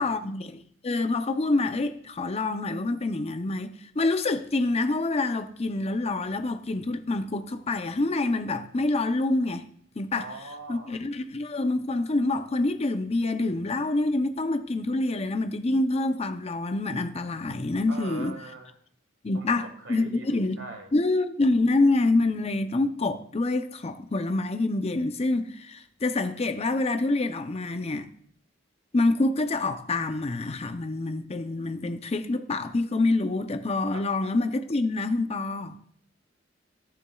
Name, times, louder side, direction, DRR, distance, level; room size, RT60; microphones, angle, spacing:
voice 1, 0.0-9.6 10.0-10.3 10.7-18.4 19.2-20.6 20.9-28.1 28.9-35.8, left 2 dB, 35° left, 0.6 m, -26 dB
voice 2, 10.1-11.0 17.9-18.7 19.3-20.9 33.9-34.1, right 2 dB, 75° right, 1.7 m, -42 dB
15.0 x 7.0 x 2.3 m
head